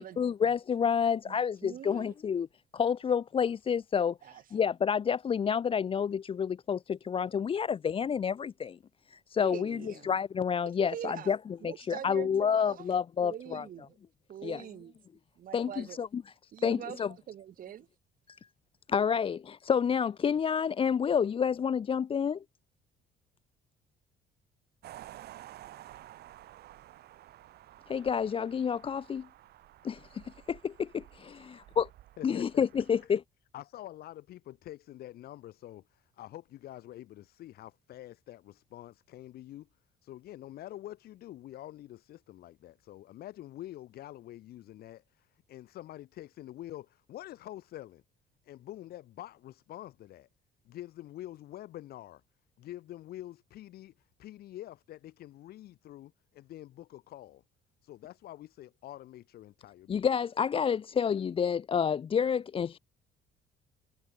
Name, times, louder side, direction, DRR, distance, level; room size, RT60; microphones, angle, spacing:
voice 1, 0.0-2.5 2.7-8.8 9.1-11.4 11.6-13.6 14.4-14.6 15.5-16.2 16.6-17.1 18.9-22.4 27.9-29.3 29.8-31.9 32.2-33.2 59.9-62.8, left 7 dB, 30° left, 0.6 m, -29 dB
voice 2, 1.3-2.1 4.2-4.4 9.4-10.1 10.8-11.4 11.6-12.9 13.2-14.0 14.3-14.9 15.4-16.0 16.5-17.9, right 10 dB, 55° right, 2.6 m, -43 dB
sound 1, 24.8-33.1, right 14 dB, 70° right, 6.0 m, -52 dB
voice 3, 32.2-32.7 33.1-33.2 33.5-39.7 40.0-48.0 48.4-50.3 50.6-52.2 52.6-57.4 57.8-60.0, left 14 dB, 65° left, 1.3 m, -46 dB
cardioid pair, 110°, 17 cm